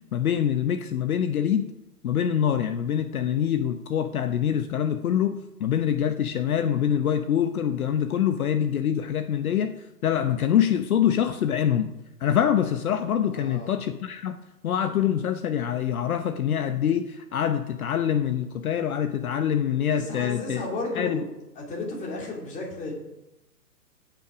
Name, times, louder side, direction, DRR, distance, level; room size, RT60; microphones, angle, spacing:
voice 1, 0.1-1.7 2.0-11.9 12.2-14.4 14.6-20.6 21.0-21.2, left 9 dB, 60° left, 9 dB, 0.8 m, -25 dB
voice 2, 13.3-13.7 19.9-21.3 21.6-22.9, left 2 dB, 15° left, -2 dB, 2.6 m, -33 dB
16.0 x 5.9 x 5.0 m, 0.93 s
hypercardioid pair, 140°, 48 cm